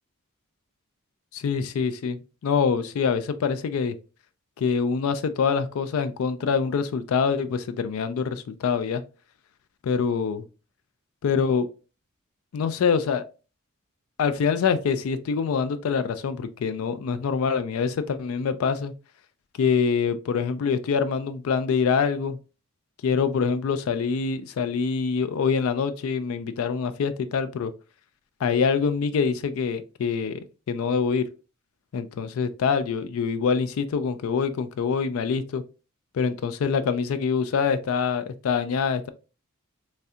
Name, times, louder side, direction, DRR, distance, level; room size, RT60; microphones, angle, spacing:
voice 1, 1.3-3.9 4.6-9.0 9.8-10.4 11.2-11.7 12.5-13.2 14.2-18.9 19.6-22.4 23.0-27.7 28.4-30.4 30.7-31.3 31.9-35.6 36.1-39.1, left 6 dB, 80° left, 0.3 m, -25 dB
3.2 x 2.7 x 2.4 m
head